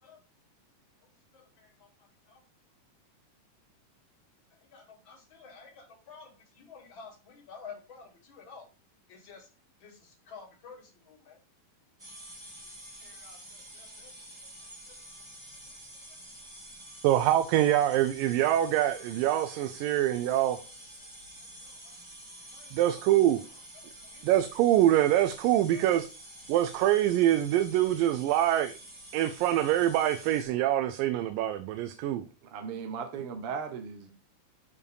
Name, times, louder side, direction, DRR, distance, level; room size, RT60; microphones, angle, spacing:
voice 1, 1.3-1.9 2.3-2.4 4.5-8.7 9.1-9.5 9.8-11.4 12.6-12.7 13.0-14.1 14.9-15.0 20.5-20.7 21.6-21.9 22.5-23.0 23.7-24.4 25.4-25.9, left 5 dB, 40° left, 2.6 m, -51 dB
sound 1, 12.0-30.4, right 1 dB, 20° right, 0.7 m, -48 dB
voice 2, 17.0-20.6 22.7-23.4 24.2-26.1 26.5-28.7 29.1-32.3, right 12 dB, 90° right, 2.3 m, -25 dB
voice 3, 32.5-34.1, right 6 dB, 65° right, 1.4 m, -37 dB
7.3 x 5.0 x 4.7 m
omnidirectional pair, 3.8 m